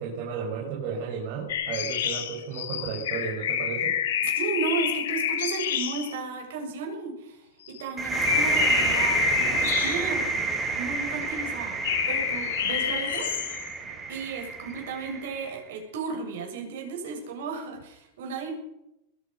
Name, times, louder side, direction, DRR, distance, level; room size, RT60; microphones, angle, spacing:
voice 1, 0.0-4.0, right 6 dB, 45° right, -2 dB, 5.1 m, -33 dB
sound 1, 1.5-6.2 7.7-7.9 8.2-10.4 11.8-13.7, left 9 dB, 80° left, 2.9 m, -28 dB
voice 2, 4.2-10.3 10.7-13.3 14.1-18.5, right 5 dB, 70° right, 2 dB, 7.1 m, -34 dB
sound 2, 8.0-15.5, right 3 dB, 15° right, 3.1 m, -28 dB
21.0 x 9.6 x 6.8 m, 0.84 s
supercardioid pair, 155°, 0 cm